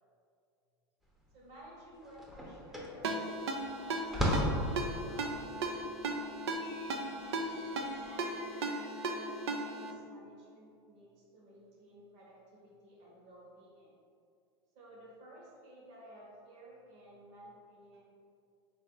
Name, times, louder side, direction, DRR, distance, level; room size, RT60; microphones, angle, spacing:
sound 1, 1.2-1.3 1.6-8.1, equal, ahead, 0.7 m, -36 dB
voice 1, 1.3-5.8 7.2-13.9 14.7-18.0, right 1 dB, 55° right, -5 dB, 1.3 m, -55 dB
Ringtone, 3.0-9.9, right 2 dB, 85° right, 0.5 m, -37 dB
sound 2, 6.6-9.5, left 3 dB, 50° left, 0.8 m, -57 dB
3.6 x 2.8 x 3.7 m, 2.4 s
hypercardioid pair, 105°, 14 cm